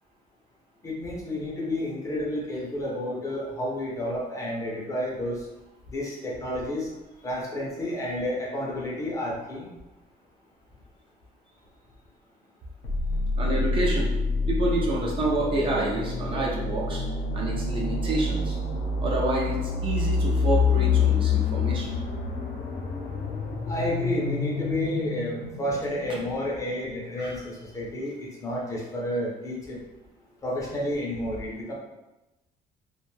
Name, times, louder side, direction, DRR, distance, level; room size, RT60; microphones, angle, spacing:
voice 1, 0.8-5.5 5.9-6.9 7.2-9.7 23.7-29.8 30.4-31.7, left 1 dB, 20° left, -4 dB, 0.5 m, -30 dB
sound 1, 12.8-26.6, left 4 dB, 80° left, 0.6 m, -27 dB
voice 2, 13.4-14.1 14.5-17.0 17.3-18.6 19.0-21.9 27.2-27.4, right 2 dB, 35° right, -3 dB, 0.4 m, -28 dB
2.4 x 2.2 x 3.1 m, 1.0 s
cardioid pair, 180°, 16 cm